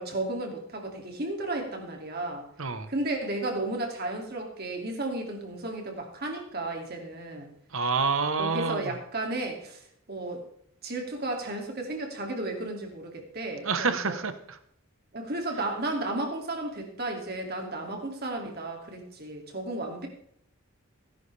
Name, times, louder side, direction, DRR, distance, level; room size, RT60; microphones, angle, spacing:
voice 1, 0.0-2.5 2.9-7.5 8.4-10.4 10.8-14.2 15.1-20.1, right 2 dB, 45° right, 2 dB, 2.5 m, -33 dB
voice 2, 2.6-2.9 7.7-8.9 13.6-14.6, right 4 dB, 70° right, 11 dB, 1.1 m, -28 dB
17.5 x 10.5 x 3.4 m, 0.67 s
head